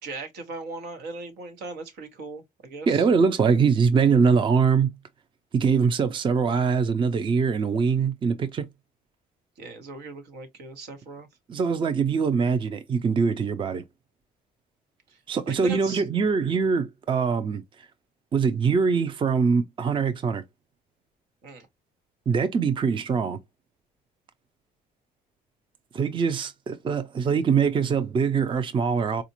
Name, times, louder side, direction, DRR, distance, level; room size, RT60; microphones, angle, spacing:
voice 1, 0.0-3.1 9.6-11.3 15.1-15.2 15.5-16.0 21.4-21.7, right 3 dB, 80° right, 1.3 m, -38 dB
voice 2, 2.9-4.9 5.5-8.6 11.5-13.8 15.3-17.6 18.3-20.4 22.3-23.4 25.9-29.2, right 5 dB, 30° right, 0.5 m, -23 dB
4.2 x 2.4 x 2.8 m
cardioid pair, 110°, 17 cm